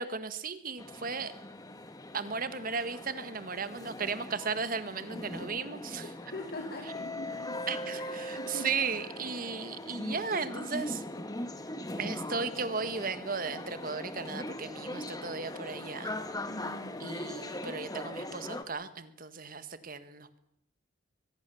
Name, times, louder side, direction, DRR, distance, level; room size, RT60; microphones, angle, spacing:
voice 1, 0.0-1.3 2.1-6.1 7.7-11.0 12.0-16.1 17.0-20.4, right 5 dB, 45° right, 12 dB, 1.6 m, -36 dB
sound 1, 0.8-18.6, left 1 dB, 20° left, 1.5 m, -40 dB
voice 2, 6.0-8.7 9.3-9.7 16.5-17.1, left 1 dB, 50° left, 4 dB, 2.3 m, -44 dB
23.5 x 20.0 x 7.1 m, 0.78 s
head